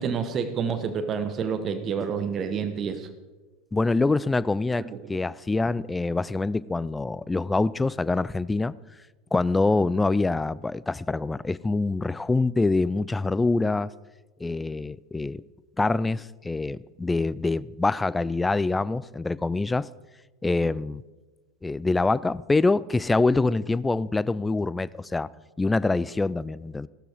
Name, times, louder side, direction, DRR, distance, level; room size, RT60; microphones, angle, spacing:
voice 1, 0.0-3.1 4.7-5.2, right 6 dB, 30° right, 1.2 m, -29 dB
voice 2, 3.7-8.7 9.3-13.9 14.4-15.4 15.8-19.9 20.4-21.0 21.6-25.3 25.6-26.9, left 3 dB, 10° left, 0.4 m, -25 dB
15.0 x 13.0 x 4.7 m
figure-of-eight pair, 80°, 0 cm